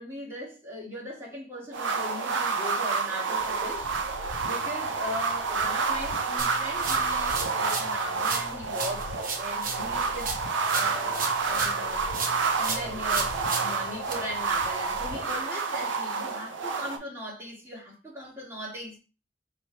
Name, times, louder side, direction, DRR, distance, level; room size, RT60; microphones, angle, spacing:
voice 1, 0.0-3.9 4.1-10.3 10.7-12.1 12.6-19.0, equal, 15° right, 1.6 m, -39 dB
sound 1, 1.7-17.0, right 4 dB, 85° right, 0.6 m, -29 dB
sound 2, 3.4-15.4, left 3 dB, 90° left, 0.5 m, -43 dB
sound 3, 6.4-7.9 8.2-11.8 12.1-14.1, right 4 dB, 50° right, 0.8 m, -34 dB
3.3 x 3.1 x 4.4 m
head